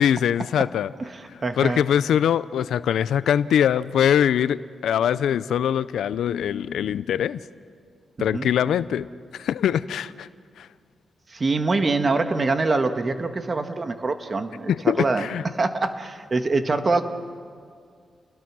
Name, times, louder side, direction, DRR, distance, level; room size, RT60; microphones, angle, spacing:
voice 1, 0.0-0.9 1.6-7.4 8.2-10.3 10.6-10.7 14.7-15.4, left 9 dB, 90° left, 17 dB, 0.5 m, -22 dB
voice 2, 1.0-1.9 8.2-8.5 11.3-15.2 15.5-17.0, right 3 dB, 40° right, 7 dB, 1.6 m, -24 dB
29.5 x 20.0 x 6.2 m, 2.1 s
cardioid pair, 70°, 0 cm